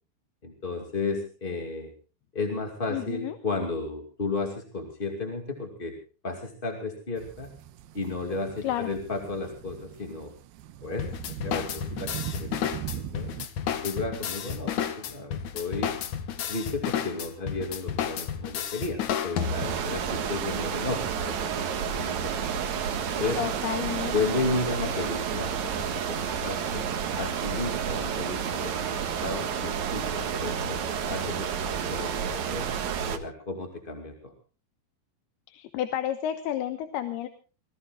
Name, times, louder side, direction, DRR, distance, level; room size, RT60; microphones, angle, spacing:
voice 1, 0.4-1.9 2.3-6.0 6.2-7.5 7.9-10.3 10.8-13.3 13.8-16.0 16.5-22.3 23.2-23.4 24.1-26.9 27.1-30.8 31.1-32.7 33.1-34.3, left 3 dB, 20° left, 3 dB, 1.8 m, -33 dB
voice 2, 2.9-3.4 8.6-8.9 23.4-24.5 24.8-24.9 35.5-37.3, left 11 dB, 75° left, 9 dB, 3.1 m, -31 dB
sound 1, 7.2-13.5, right 11 dB, 80° right, 2.8 m, -40 dB
sound 2, 11.0-19.9, left 8 dB, 60° left, 2.4 m, -32 dB
sound 3, 19.4-33.2, right 7 dB, 55° right, 2.5 m, -30 dB
27.5 x 20.0 x 2.4 m, 0.36 s
omnidirectional pair, 4.7 m